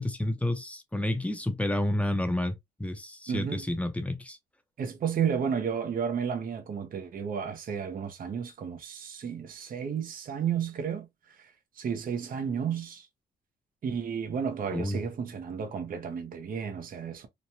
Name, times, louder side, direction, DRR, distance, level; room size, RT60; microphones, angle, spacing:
voice 1, 0.0-2.5 2.8-4.4 14.7-15.0, left 1 dB, 5° left, 0.6 m, -30 dB
voice 2, 3.3-3.7 4.8-13.1 13.8-17.3, right 7 dB, 45° right, 0.7 m, -32 dB
3.1 x 2.2 x 2.7 m
cardioid pair, 90°, 20 cm